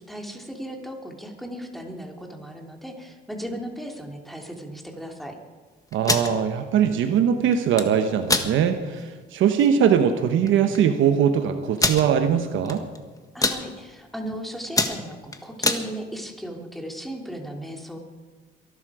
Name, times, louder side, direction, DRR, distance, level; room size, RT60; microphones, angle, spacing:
voice 1, 0.0-5.3 13.3-18.0, equal, ahead, 2 dB, 3.0 m, -36 dB
sound 1, 5.9-6.3 7.5-7.9 8.3-8.5 9.0-9.1 9.4-9.7 10.5-10.6 10.7-10.8 11.8-12.0 12.7-13.0 13.2-13.6 14.2-14.3 14.6-15.8, left 2 dB, 15° left, 1.6 m, -23 dB
voice 2, 5.9-12.8, right 8 dB, 80° right, 7 dB, 1.1 m, -21 dB
22.5 x 12.0 x 4.9 m, 1.4 s
cardioid pair, 90°, 20 cm